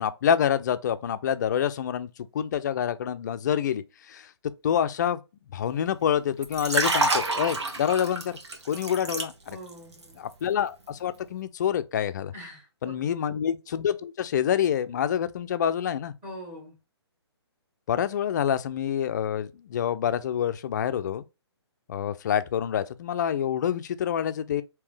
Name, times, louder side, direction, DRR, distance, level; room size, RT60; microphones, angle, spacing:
voice 1, 0.0-2.1 2.3-4.3 4.6-5.2 5.5-8.3 8.7-9.3 10.2-12.3 12.8-16.1 17.9-21.2 21.9-24.6, left 9 dB, 40° left, 0.4 m, -27 dB
Liquid, 6.4-9.7 10.0-10.3, right 2 dB, 80° right, 1.1 m, -28 dB
voice 2, 8.7-9.0 9.5-10.3 12.3-13.2 16.2-16.7, equal, 15° right, 1.5 m, -44 dB
3.6 x 2.8 x 3.3 m
hypercardioid pair, 155°, 14 cm